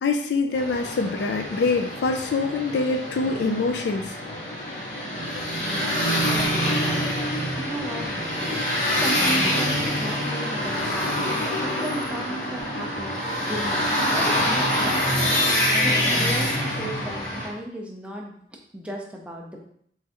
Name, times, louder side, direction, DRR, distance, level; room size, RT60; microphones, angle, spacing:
voice 1, 0.0-4.2, left 3 dB, 80° left, 5 dB, 0.3 m, -25 dB
sound 1, 0.5-17.5, equal, 45° left, 1.1 m, -25 dB
voice 2, 5.6-8.1 8.4-11.4 11.6-13.9 14.1-18.3 18.7-19.7, right 1 dB, 5° right, -1 dB, 0.4 m, -36 dB
3.5 x 3.1 x 2.8 m, 0.67 s
head